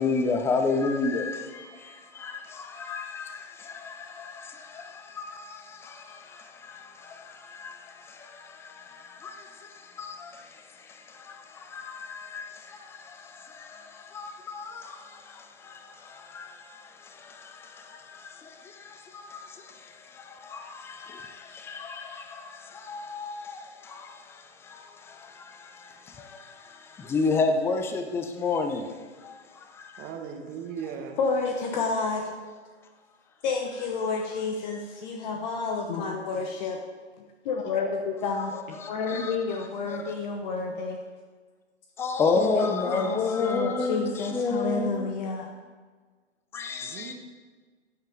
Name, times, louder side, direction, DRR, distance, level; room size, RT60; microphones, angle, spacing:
voice 1, 0.0-30.1 38.5-40.2 42.0-45.1 46.5-47.1, left 4 dB, 5° left, 0.5 m, -32 dB
voice 2, 30.0-31.2 46.8-47.1, right 7 dB, 25° right, 1.4 m, -37 dB
voice 3, 31.2-32.3 33.4-36.8 37.4-38.5 38.9-41.0 42.3-45.5, left 4 dB, 40° left, 1.2 m, -30 dB
14.5 x 8.9 x 3.8 m
figure-of-eight pair, 125°, 35 cm